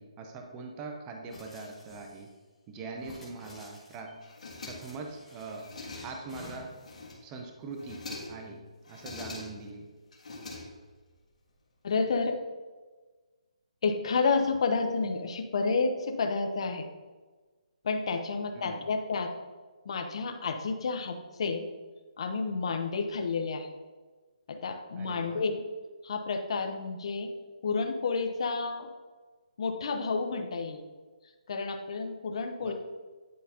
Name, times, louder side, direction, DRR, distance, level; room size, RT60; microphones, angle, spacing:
voice 1, 0.0-2.3 2.7-4.2 4.6-5.7 6.0-6.7 7.2-9.9 18.5-18.9 25.0-25.5 32.6-32.7, right 3 dB, 15° right, 3 dB, 0.5 m, -42 dB
sound 1, 1.3-2.3 3.0-4.1 4.7-5.7 6.3-6.9, left 1 dB, 5° left, 1.1 m, -51 dB
sound 2, 4.2-5.1 5.5-6.3 6.7-7.4 7.7-8.5 8.8-9.7 10.1-11.1, left 2 dB, 75° left, 1.6 m, -43 dB
voice 2, 11.8-12.4 13.8-16.9 17.8-19.3 19.8-21.7 22.2-23.7 24.5-25.6 26.0-27.3 27.6-28.9 29.6-30.8 31.5-32.7, left 4 dB, 50° left, 5 dB, 0.7 m, -30 dB
9.3 x 3.9 x 2.8 m, 1.3 s
hypercardioid pair, 160°, 4 cm